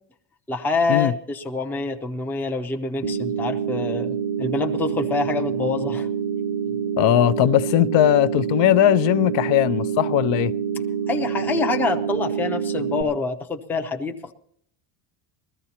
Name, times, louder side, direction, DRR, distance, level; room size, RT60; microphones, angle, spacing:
voice 1, 0.5-6.1 11.1-14.3, left 3 dB, 5° left, 0.4 m, -26 dB
sound 1, 3.0-13.0, right 7 dB, 90° right, 0.9 m, -26 dB
voice 2, 7.0-10.5, left 14 dB, 65° left, 0.5 m, -19 dB
20.5 x 14.0 x 2.8 m
cardioid pair, 165°, 47 cm